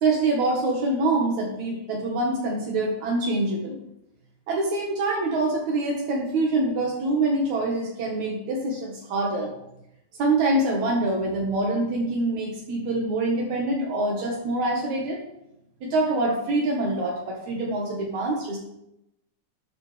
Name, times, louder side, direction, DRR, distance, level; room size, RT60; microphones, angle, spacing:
voice 1, 0.0-3.8 4.5-9.5 10.2-15.2 15.8-18.6, right 2 dB, 75° right, -2 dB, 2.8 m, -25 dB
12.0 x 10.5 x 3.3 m, 0.85 s
omnidirectional pair, 3.4 m